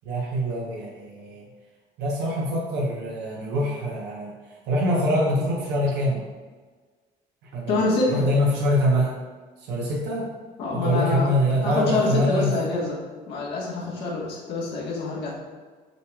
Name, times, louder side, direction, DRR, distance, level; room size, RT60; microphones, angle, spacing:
voice 1, 0.0-1.5 2.0-4.3 4.7-6.3 7.5-7.8 8.1-9.2 9.6-10.3 10.7-12.5, equal, 85° right, -4 dB, 0.9 m, -24 dB
voice 2, 7.7-8.3 10.6-11.3 11.6-15.4, left 2 dB, 80° left, -4 dB, 1.3 m, -26 dB
6.5 x 3.2 x 2.3 m, 1.4 s
cardioid pair, 110°, 17 cm